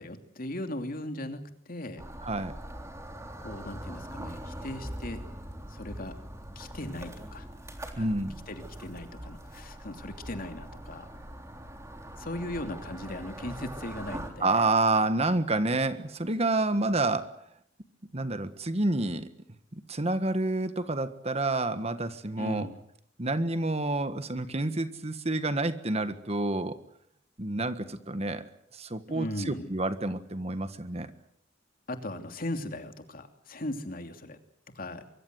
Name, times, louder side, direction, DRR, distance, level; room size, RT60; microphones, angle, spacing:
voice 1, 0.0-2.0 3.4-5.2 5.7-6.2 6.5-7.5 8.0-8.1 8.5-11.1 12.2-14.7 22.4-22.8 29.1-29.7 31.9-34.4 34.7-35.0, left 1 dB, 50° left, 6 dB, 2.9 m, -38 dB
sound 1, 2.0-14.3, right 1 dB, 15° right, 3.6 m, -42 dB
voice 2, 2.2-2.5 8.0-8.4 14.4-17.3 18.1-19.3 19.7-22.7 23.2-26.8 27.4-28.4 28.7-31.1, right 2 dB, 35° right, 11 dB, 1.5 m, -28 dB
24.0 x 24.0 x 8.1 m, 0.70 s
head